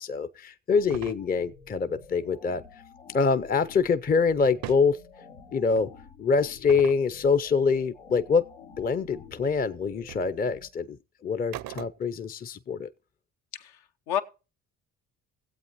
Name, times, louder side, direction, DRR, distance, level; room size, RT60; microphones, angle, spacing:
voice 1, 0.0-2.6 3.1-5.0 5.5-5.9 6.2-8.4 8.8-11.0 11.2-12.9, left 5 dB, 25° left, 0.5 m, -25 dB
sound 1, 0.7-10.7, left 5 dB, 90° left, 1.3 m, -50 dB
sound 2, 0.9-1.2 4.4-4.9 5.8-5.9 6.7-7.1 9.4-9.5 10.1-10.3 11.5-12.2, right 13 dB, 60° right, 0.6 m, -39 dB
voice 2, 13.5-14.2, left 10 dB, 75° left, 0.9 m, -31 dB
18.0 x 8.0 x 3.0 m
hypercardioid pair, 50°, 40 cm